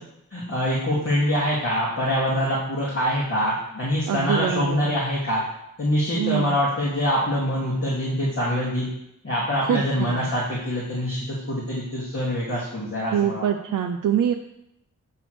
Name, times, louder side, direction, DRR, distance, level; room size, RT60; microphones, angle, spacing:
voice 1, 0.3-5.4 5.8-8.9 9.2-13.5, equal, 45° left, -7 dB, 2.5 m, -24 dB
voice 2, 4.1-5.0 6.2-6.6 9.6-10.3 13.1-14.3, right 9 dB, 80° right, 5 dB, 0.5 m, -24 dB
9.1 x 3.3 x 6.1 m, 0.81 s
cardioid pair, 70°, 32 cm